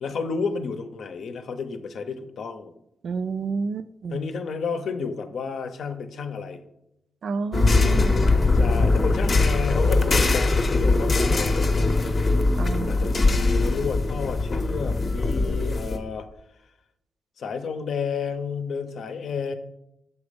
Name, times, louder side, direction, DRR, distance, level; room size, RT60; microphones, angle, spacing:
voice 1, 0.0-2.7 4.1-6.6 8.5-12.1 12.9-16.3 17.4-19.5, left 5 dB, 70° left, 9 dB, 0.7 m, -31 dB
voice 2, 3.0-4.3 7.2-8.4 12.6-13.5, right 5 dB, 60° right, 14 dB, 0.3 m, -31 dB
sound 1, 7.5-16.0, left 3 dB, 35° left, 0.7 m, -21 dB
6.9 x 4.2 x 5.1 m, 0.83 s
wide cardioid pair, 150°, 0 cm